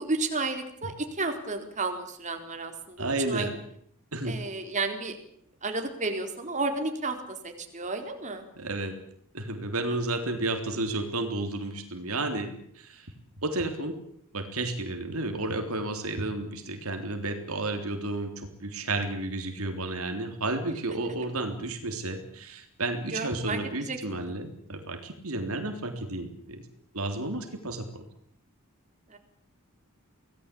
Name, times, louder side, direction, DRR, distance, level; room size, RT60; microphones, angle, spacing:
voice 1, 0.0-3.5 4.2-5.2 5.6-7.2 7.4-8.4 23.1-24.3 29.1-29.2, right 3 dB, 35° right, 5 dB, 4.1 m, -32 dB
voice 2, 3.0-3.6 4.1-4.4 8.6-9.0 9.3-13.1 13.4-13.9 14.3-26.7 26.9-28.0, right 2 dB, 70° right, 6 dB, 3.5 m, -32 dB
25.5 x 18.5 x 8.6 m, 0.68 s
head